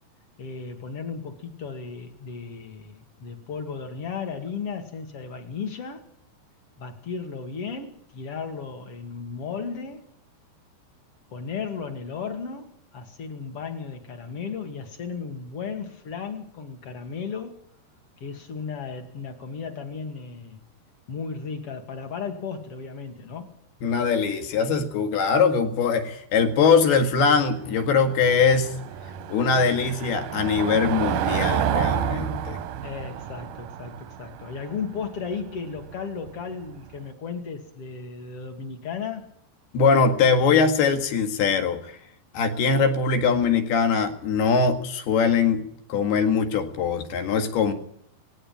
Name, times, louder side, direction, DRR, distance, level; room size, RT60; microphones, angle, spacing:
voice 1, 0.4-6.0 6.8-10.0 11.3-17.6 18.2-20.6 21.1-23.5 32.8-39.3, left 5 dB, 40° left, 2.6 m, -35 dB
voice 2, 23.8-28.8 29.3-32.6 39.7-42.0 42.3-45.6 45.9-47.7, left 5 dB, 70° left, 3.7 m, -22 dB
Car passing by / Engine, 26.3-37.0, right 10 dB, 75° right, 2.0 m, -31 dB
18.5 x 16.5 x 9.1 m
omnidirectional pair, 4.9 m